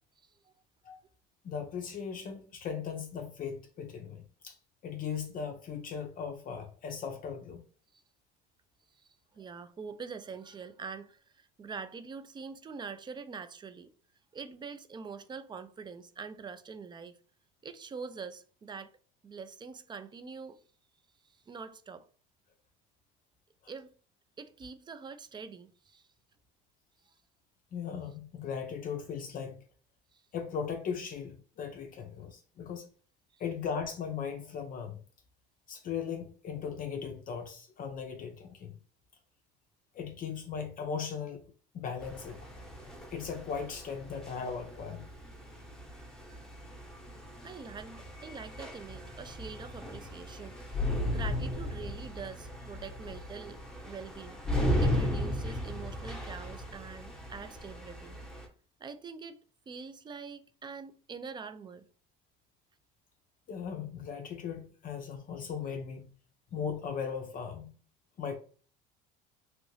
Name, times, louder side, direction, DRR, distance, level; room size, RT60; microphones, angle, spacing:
voice 1, 1.4-4.6 4.8-7.6 23.6-23.7 27.7-29.6 30.3-32.9 33.4-35.0 35.7-38.8 39.9-41.4 41.7-42.5 43.1-45.1 63.5-66.1 66.5-67.7 68.2-68.4, left 6 dB, 40° left, 0.5 m, -38 dB
voice 2, 9.3-13.9 14.3-17.2 17.6-18.9 19.2-20.6 21.5-22.1 23.7-23.9 24.4-26.1 30.1-30.2 47.4-54.4 54.8-58.2 58.8-59.4 59.7-61.9, right 5 dB, 20° right, 0.4 m, -44 dB
sound 1, 42.0-58.5, left 1 dB, 5° left, 0.9 m, -36 dB
3.0 x 2.5 x 3.1 m
supercardioid pair, 100°, 21 cm